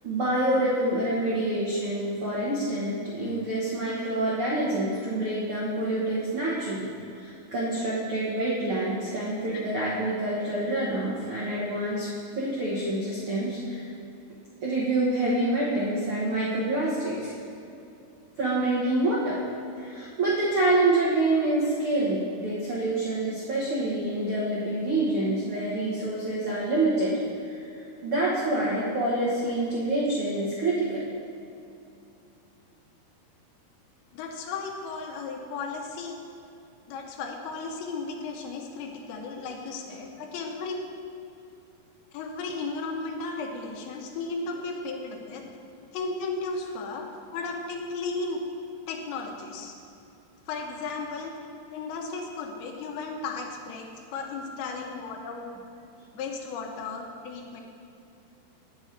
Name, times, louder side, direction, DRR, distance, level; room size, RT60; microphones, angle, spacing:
voice 1, 0.0-6.9 7.2-12.1 12.4-13.9 14.6-17.3 18.4-19.4 19.7-27.2 27.5-27.6 28.0-31.0 56.0-56.1, right 2 dB, 70° right, -7 dB, 1.2 m, -27 dB
voice 2, 34.1-36.2 36.9-40.9 42.1-45.4 45.9-47.0 47.3-48.4 48.9-49.7 50.5-51.3 51.7-55.5 56.1-57.6, left 4 dB, 80° left, 1 dB, 2.8 m, -35 dB
8.7 x 6.7 x 4.3 m, 2.7 s
omnidirectional pair, 4.5 m